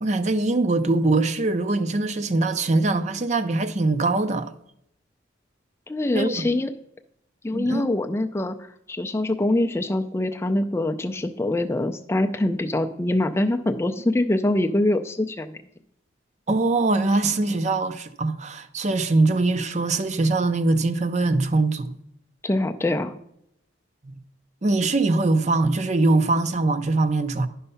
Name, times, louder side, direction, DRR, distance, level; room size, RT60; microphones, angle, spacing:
voice 1, 0.0-4.5 6.1-6.5 7.5-7.9 16.5-22.0 24.0-24.2 24.6-27.5, right 2 dB, 40° right, 0.6 m, -22 dB
voice 2, 5.9-6.7 7.4-8.6 8.9-15.6 22.4-23.1, left 1 dB, 15° left, 0.4 m, -24 dB
11.0 x 5.5 x 5.6 m
head